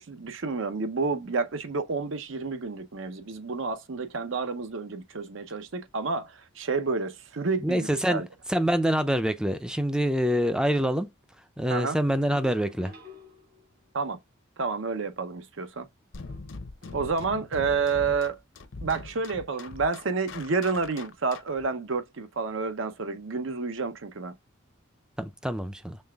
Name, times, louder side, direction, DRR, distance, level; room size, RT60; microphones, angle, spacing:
voice 1, 0.0-8.3 11.7-12.0 13.9-14.2 14.6-15.9 16.9-18.4 18.8-24.3, right 4 dB, 65° right, 0.7 m, -30 dB
voice 2, 7.6-8.2 8.5-11.1 11.6-12.9 25.2-26.0, equal, 5° right, 0.4 m, -25 dB
sound 1, 11.8-14.0 16.3-17.5 19.5-20.2 20.6-20.9, left 2 dB, 45° right, 1.8 m, -52 dB
sound 2, 16.1-21.7, left 3 dB, 65° left, 0.6 m, -42 dB
5.5 x 3.3 x 2.3 m
head